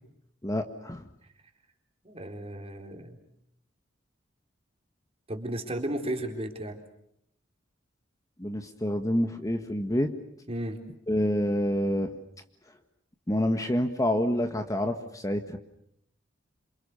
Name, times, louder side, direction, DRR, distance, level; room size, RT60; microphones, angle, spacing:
voice 1, 0.4-1.0 8.4-10.1 11.1-12.1 13.3-15.6, left 1 dB, 15° left, 6 dB, 1.6 m, -27 dB
voice 2, 2.0-3.2 5.3-6.8 10.5-10.8, right 1 dB, 30° right, 4 dB, 4.1 m, -34 dB
28.0 x 27.5 x 6.8 m, 0.74 s
head